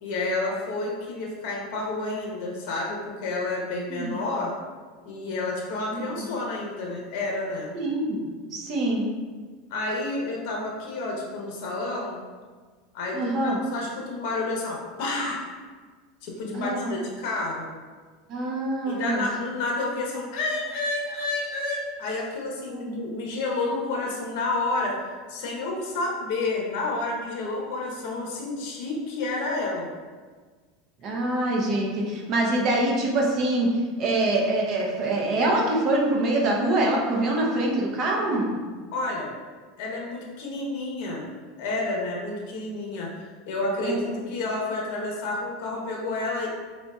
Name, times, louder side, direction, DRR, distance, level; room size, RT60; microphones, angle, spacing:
voice 1, 0.0-4.5 5.0-7.7 9.7-12.2 12.9-15.4 16.2-17.7 18.8-25.0 25.3-29.9 38.9-39.3 39.8-41.3 41.6-43.1 43.5-46.5, left 2 dB, 60° left, -2 dB, 1.0 m, -30 dB
voice 2, 5.9-6.2 7.7-9.0 13.1-13.6 16.5-16.9 18.3-19.3 22.7-23.1 31.0-33.7 34.0-38.5 43.8-44.2, right 2 dB, 40° right, -1 dB, 0.9 m, -25 dB
4.1 x 4.1 x 2.4 m, 1.5 s
supercardioid pair, 135°, 0 cm